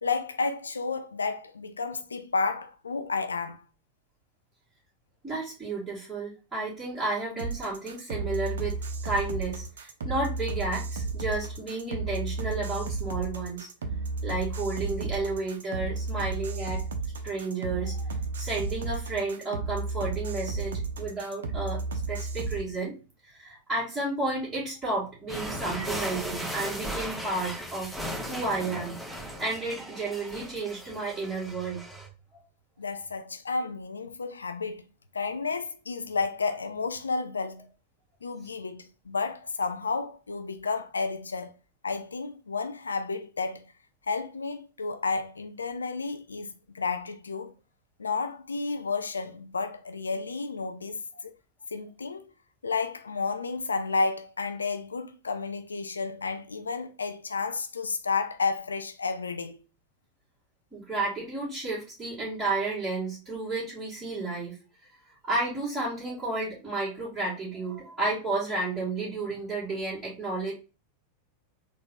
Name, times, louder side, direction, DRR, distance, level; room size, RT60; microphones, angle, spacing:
voice 1, 0.0-3.6 32.8-34.8 35.1-37.7 38.2-41.5 41.8-43.7 44.1-47.5 48.0-51.3 51.7-52.3 52.6-59.6, left 4 dB, 75° left, 0.4 m, -31 dB
voice 2, 5.2-8.7 9.0-13.7 14.2-16.8 17.2-21.8 22.1-22.9 23.3-27.9 28.3-31.8 60.7-64.6 65.2-70.5, right 3 dB, 10° right, 2.0 m, -32 dB
sound 1, 7.4-22.6, right 3 dB, 65° right, 0.5 m, -33 dB
sound 2, 25.3-32.1, equal, 10° left, 1.3 m, -37 dB
3.9 x 2.6 x 3.7 m
figure-of-eight pair, 90°, 0 cm